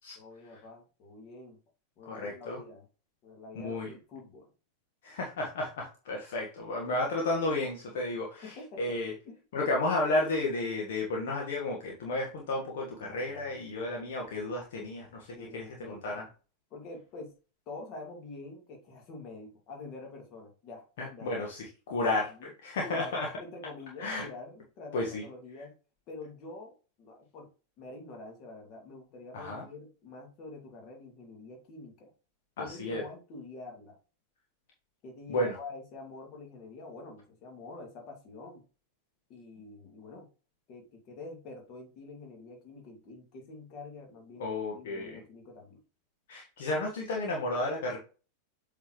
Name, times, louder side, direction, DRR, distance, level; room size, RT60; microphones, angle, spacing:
voice 1, 0.2-1.6 2.0-2.9 3.2-4.5 8.4-8.9 9.2-9.4 13.0-13.5 15.3-16.3 16.7-17.3 17.7-21.5 22.4-22.5 22.8-25.8 26.1-27.5 27.8-32.1 32.6-34.0 35.0-38.6 39.3-40.3 40.7-44.5 44.7-45.8, left 3 dB, 40° left, 2 dB, 2.2 m, -46 dB
voice 2, 2.0-2.6 3.5-3.9 5.0-9.1 9.5-16.2 21.0-22.3 22.6-23.3 24.0-24.2 24.9-25.2 29.3-29.6 32.6-33.0 35.3-35.6 44.4-45.2 46.3-48.0, left 2 dB, 55° left, -1 dB, 1.4 m, -32 dB
7.9 x 4.2 x 3.1 m, 0.35 s
figure-of-eight pair, 90°, 0 cm